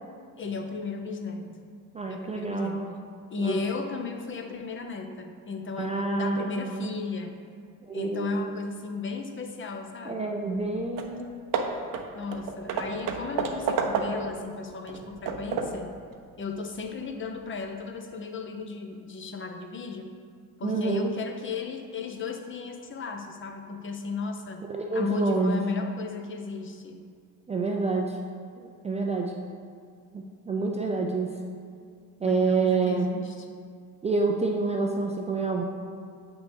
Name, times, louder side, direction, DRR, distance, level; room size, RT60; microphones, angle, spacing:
voice 1, 0.4-1.5 2.1-2.8 3.3-7.4 7.9-10.3 12.1-15.9 16.4-20.1 20.6-24.6 24.9-27.0 32.2-33.5, left 4 dB, 25° left, 4 dB, 0.8 m, -35 dB
voice 2, 1.9-2.9 3.4-3.6 5.8-6.9 7.9-8.6 10.1-11.3 20.6-21.1 24.7-25.6 27.5-28.2 28.6-29.3 30.1-31.4 32.2-33.1 34.0-35.6, right 3 dB, 15° right, 1 dB, 0.5 m, -28 dB
Hammer / Wood, 10.6-10.7 11.0-11.2 11.5-14.4 14.9-15.9, right 5 dB, 45° right, 0.7 m, -30 dB
7.9 x 5.9 x 3.4 m, 2.2 s
figure-of-eight pair, 55°, 45 cm